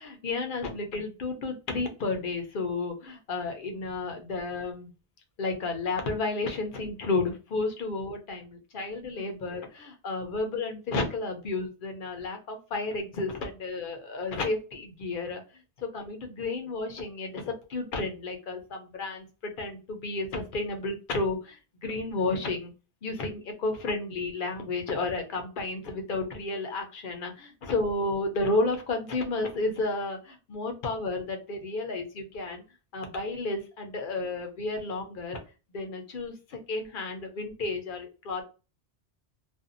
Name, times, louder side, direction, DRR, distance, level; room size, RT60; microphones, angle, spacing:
voice 1, 0.0-4.9 5.4-15.4 15.8-22.7 23.0-32.6 32.9-35.4 35.7-38.4, left 3 dB, 55° left, 4 dB, 0.8 m, -32 dB
2.6 x 2.3 x 2.5 m, 0.32 s
omnidirectional pair, 1.2 m